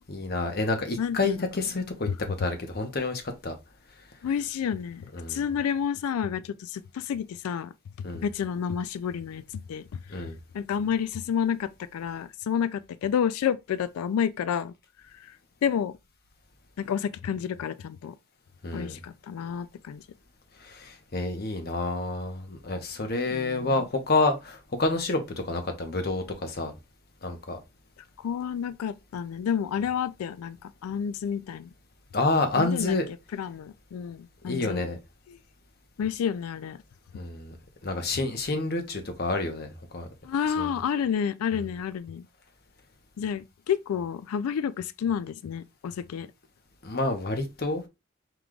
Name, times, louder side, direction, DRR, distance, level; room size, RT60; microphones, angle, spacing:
voice 1, 0.1-3.5 5.1-5.4 8.0-8.2 10.1-10.4 18.6-19.0 20.6-26.7 27.2-27.6 32.1-33.0 34.4-35.0 37.1-37.5 37.8-40.1 40.6-40.7 46.8-47.8, left 2 dB, 45° left, 0.8 m, -28 dB
voice 2, 1.0-1.4 2.1-2.2 4.2-7.7 8.1-14.7 15.1-15.4 15.6-16.0 16.8-18.1 18.7-20.0 23.3-23.8 28.2-31.7 32.6-33.0 33.3-34.8 35.3-35.4 36.0-36.8 40.2-42.3 43.2-46.3, left 8 dB, 85° left, 0.3 m, -30 dB
4.8 x 2.3 x 3.7 m
head